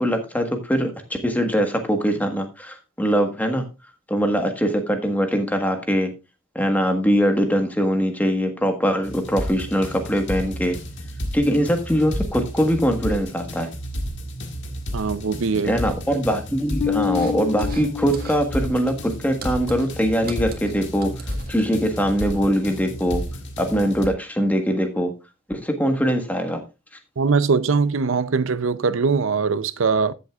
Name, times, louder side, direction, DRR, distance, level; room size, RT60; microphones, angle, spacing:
voice 1, 0.0-3.7 4.1-6.1 6.5-10.8 11.3-13.7 15.6-23.2 23.6-25.1 25.5-26.6, equal, 10° left, 1.4 m, -22 dB
sound 1, 9.0-24.1, equal, 60° left, 1.7 m, -32 dB
voice 2, 14.9-15.7 27.2-30.1, right 5 dB, 70° right, 0.6 m, -21 dB
Bass guitar, 16.8-19.2, left 8 dB, 90° left, 0.4 m, -28 dB
sound 2, 17.0-17.9 18.1-18.5 18.7-22.0, right 3 dB, 45° right, 1.7 m, -41 dB
14.5 x 7.7 x 2.4 m
head